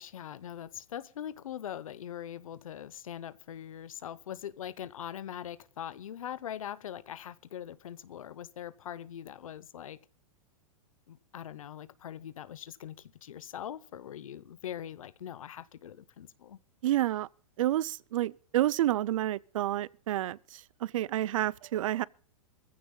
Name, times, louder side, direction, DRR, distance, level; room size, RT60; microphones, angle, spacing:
voice 1, 0.0-10.0 11.1-16.6, left 10 dB, 85° left, 1.0 m, -42 dB
voice 2, 16.8-17.3 17.6-22.0, right 13 dB, 75° right, 0.5 m, -29 dB
22.5 x 15.5 x 2.4 m
hypercardioid pair, 135°, 17 cm